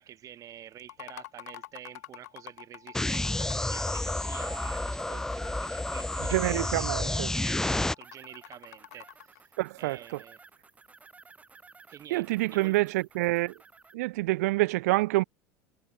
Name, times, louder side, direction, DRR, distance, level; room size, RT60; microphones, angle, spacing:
voice 1, 0.0-10.4 11.9-12.8, right 10 dB, 40° right, 3.9 m, -48 dB
sound 1, 0.8-9.4, left 16 dB, 85° left, 2.5 m, -47 dB
sound 2, 2.9-7.9, left 2 dB, 5° left, 0.6 m, -30 dB
voice 2, 6.3-7.3 9.6-10.0 12.1-13.5 13.9-15.2, right 20 dB, 80° right, 0.4 m, -27 dB
sound 3, 8.0-13.9, right 4 dB, 15° right, 2.4 m, -56 dB
supercardioid pair, 105°, 8 cm